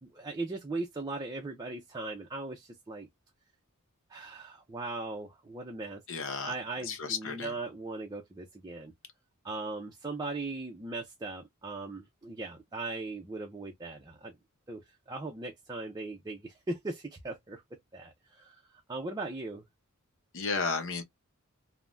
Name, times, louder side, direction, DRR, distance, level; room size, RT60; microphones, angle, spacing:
voice 1, 0.0-3.1 4.1-6.0 6.4-8.9 9.4-14.3 14.7-14.8 15.1-17.6 17.9-19.6, right 3 dB, 20° right, 0.5 m, -39 dB
voice 2, 6.1-6.5 6.8-7.5 20.3-21.0, left 5 dB, 60° left, 0.8 m, -33 dB
3.4 x 2.1 x 2.4 m
head